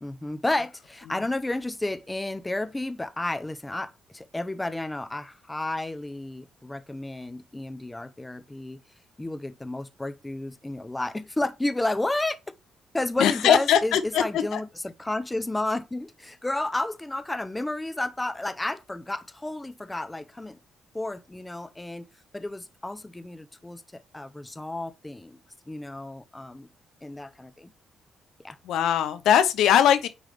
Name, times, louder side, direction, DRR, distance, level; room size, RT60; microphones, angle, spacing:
voice 1, 0.0-8.8 9.2-12.4 12.9-20.6 20.9-22.1 22.3-25.4 25.7-26.7 27.0-27.7 28.4-28.6, left 2 dB, 15° left, 0.6 m, -31 dB
voice 2, 13.2-14.6 28.6-30.1, left 9 dB, 85° left, 0.7 m, -21 dB
9.0 x 3.3 x 3.3 m
cardioid pair, 90°, 0 cm